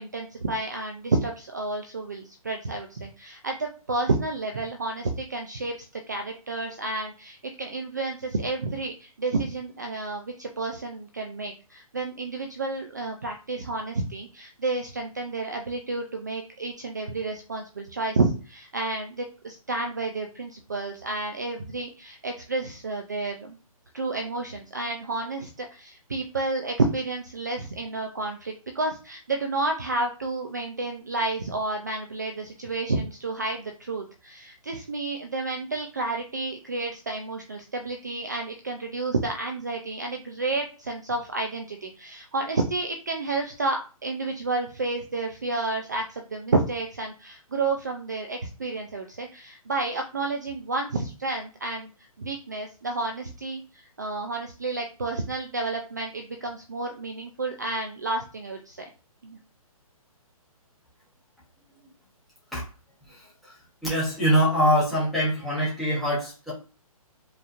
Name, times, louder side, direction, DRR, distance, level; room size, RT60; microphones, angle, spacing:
voice 1, 0.0-5.7 6.1-23.6 23.9-51.9 52.2-58.9 59.2-59.4, right 3 dB, 30° right, 0.4 m, -30 dB
voice 2, 63.8-66.5, equal, ahead, 0.8 m, -23 dB
4.8 x 3.0 x 2.4 m
hypercardioid pair, 175°, 19 cm